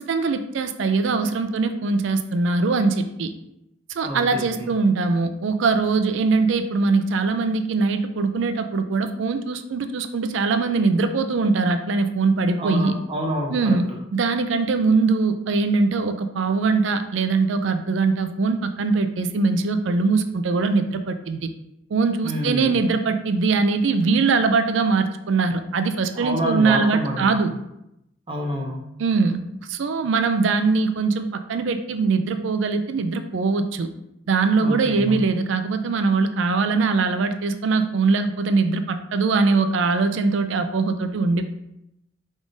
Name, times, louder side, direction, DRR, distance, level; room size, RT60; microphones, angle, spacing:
voice 1, 0.0-3.3 3.9-13.0 13.5-13.8 14.1-21.5 21.9-27.5 29.0-29.4 29.7-33.9 34.3-41.5, right 4 dB, 60° right, 9 dB, 0.4 m, -22 dB
voice 2, 4.0-4.7 12.6-13.8 22.2-22.8 26.1-27.3 28.3-28.8 34.6-35.2, equal, 25° right, 0 dB, 0.6 m, -28 dB
4.7 x 3.6 x 2.6 m, 0.83 s
head